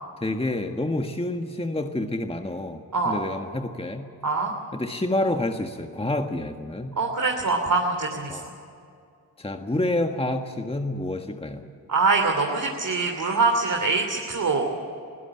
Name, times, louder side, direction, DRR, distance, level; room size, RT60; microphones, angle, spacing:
voice 1, 0.2-4.1 4.7-6.9 8.3-8.5 9.4-11.6, left 1 dB, 15° left, 5 dB, 1.6 m, -28 dB
voice 2, 7.0-8.4 11.9-14.7, right 3 dB, 45° right, 2 dB, 3.1 m, -24 dB
21.5 x 17.0 x 8.8 m, 2.5 s
supercardioid pair, 45°, 42 cm